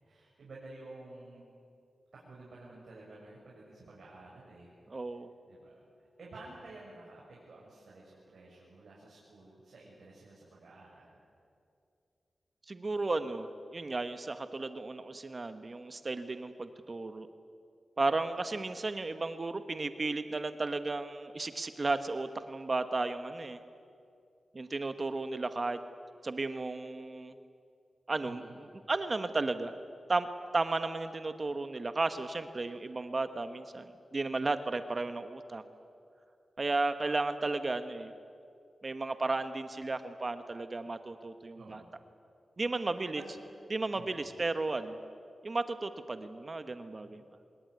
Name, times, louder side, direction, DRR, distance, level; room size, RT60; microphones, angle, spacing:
voice 1, 0.0-1.4 2.1-4.7 5.1-11.2 28.2-28.6 41.6-41.9 42.6-43.3 43.9-44.3 47.0-47.2, right 2 dB, 75° right, -5 dB, 6.5 m, -52 dB
voice 2, 4.9-5.3 12.7-17.3 18.0-23.6 24.5-25.8 26.2-27.3 28.1-29.7 30.1-30.3 30.5-35.6 36.6-38.1 38.8-41.8 42.6-43.2 43.7-45.0 45.4-47.2, right 3 dB, 40° right, 10 dB, 1.2 m, -34 dB
25.0 x 21.0 x 9.7 m, 2.4 s
wide cardioid pair, 80°, 0 cm